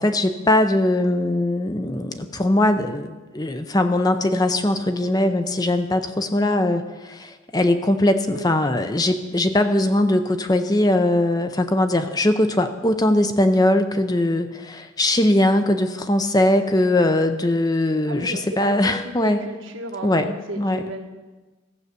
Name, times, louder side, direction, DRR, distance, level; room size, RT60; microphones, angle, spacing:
voice 1, 0.0-19.4 20.0-20.8, left 1 dB, 20° left, 8 dB, 0.6 m, -20 dB
voice 2, 18.1-21.1, right 1 dB, 80° right, 3 dB, 1.5 m, -34 dB
14.0 x 6.5 x 8.2 m, 1.2 s
head